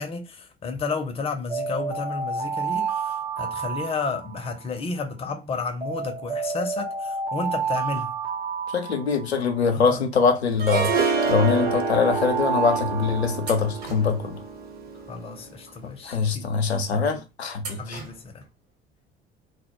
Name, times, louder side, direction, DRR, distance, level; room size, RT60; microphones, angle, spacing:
voice 1, 0.0-8.2 9.7-10.1 15.1-16.5 16.9-17.2 17.8-18.5, left 4 dB, 20° left, 0.5 m, -32 dB
sound 1, 1.5-4.7 5.8-9.6 10.7-13.9, right 5 dB, 85° right, 0.8 m, -30 dB
voice 2, 8.7-14.4 16.0-18.0, left 5 dB, 85° left, 0.5 m, -23 dB
Harp, 10.6-15.7, right 5 dB, 30° right, 0.6 m, -28 dB
sound 2, 10.8-11.7 13.4-14.5 17.6-18.5, right 4 dB, 55° right, 1.0 m, -41 dB
2.2 x 2.0 x 2.9 m
figure-of-eight pair, 60°, 32 cm